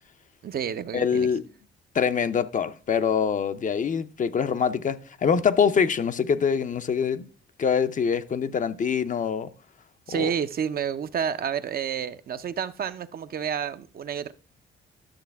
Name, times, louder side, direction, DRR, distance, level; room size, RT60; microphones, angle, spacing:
voice 1, 0.4-1.3 10.1-14.3, right 8 dB, 50° right, 0.6 m, -30 dB
voice 2, 0.9-1.4 1.9-7.3 7.6-9.5 10.1-10.3, left 6 dB, 40° left, 0.6 m, -24 dB
11.5 x 6.6 x 3.5 m
cardioid pair, 90°, 20 cm